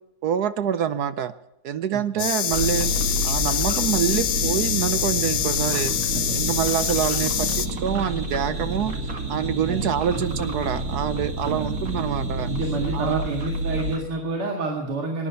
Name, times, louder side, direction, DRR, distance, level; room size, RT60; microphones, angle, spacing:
voice 1, 0.2-1.3 1.6-2.9 3.2-6.0 6.3-8.9 9.3-12.5 12.9-13.2, right 9 dB, 65° right, 13 dB, 1.0 m, -26 dB
voice 2, 1.9-2.5 6.1-6.4 9.7-10.2 11.4-11.8 12.5-15.3, right 3 dB, 85° right, 1 dB, 3.0 m, -30 dB
sound 1, 2.2-7.7, left 10 dB, 80° left, 1.9 m, -25 dB
sound 2, 2.5-14.0, right 1 dB, 40° right, 2.5 m, -29 dB
18.0 x 11.5 x 5.6 m, 0.89 s
omnidirectional pair, 2.4 m